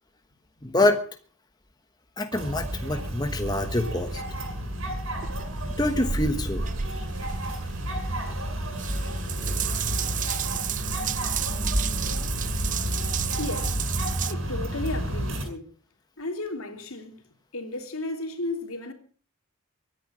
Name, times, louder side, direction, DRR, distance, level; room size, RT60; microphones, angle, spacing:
voice 1, 0.6-1.0 2.2-4.2 5.8-6.6, left 1 dB, 20° left, 1.3 m, -25 dB
sound 1, 2.3-15.4, equal, 60° right, 7.4 m, -31 dB
Water tap faucet / Bathtub (filling or washing) / Drip, 5.2-14.3, right 8 dB, 35° right, 0.7 m, -33 dB
voice 2, 13.4-13.8 14.2-15.7 16.2-18.9, left 2 dB, 70° left, 3.0 m, -34 dB
23.0 x 10.0 x 6.2 m
head